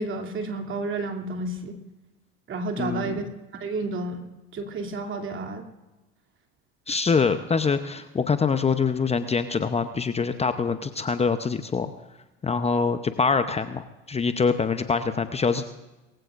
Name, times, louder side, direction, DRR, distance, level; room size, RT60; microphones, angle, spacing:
voice 1, 0.0-1.8 2.5-3.3 3.6-4.2 4.5-5.6, right 2 dB, 40° right, 3 dB, 2.9 m, -31 dB
voice 2, 2.8-3.2 6.9-11.9 12.4-15.6, left 5 dB, 20° left, 9 dB, 0.8 m, -24 dB
22.5 x 15.5 x 2.6 m, 1.0 s
hypercardioid pair, 80°, 30 cm